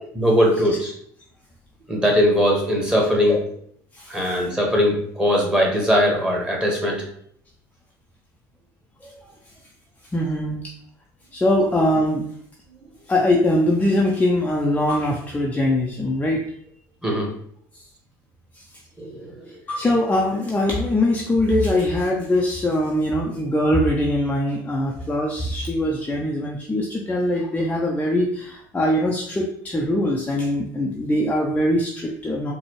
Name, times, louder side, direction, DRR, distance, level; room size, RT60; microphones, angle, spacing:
voice 1, 0.1-0.9 1.9-3.4 4.1-7.0 17.0-17.3 19.0-19.4, equal, 10° right, -1 dB, 1.5 m, -20 dB
voice 2, 10.1-10.6 11.3-12.3 13.1-16.4 19.7-32.5, left 1 dB, 15° left, -2 dB, 0.6 m, -22 dB
4.0 x 2.3 x 3.2 m, 0.63 s
hypercardioid pair, 75°, 9 cm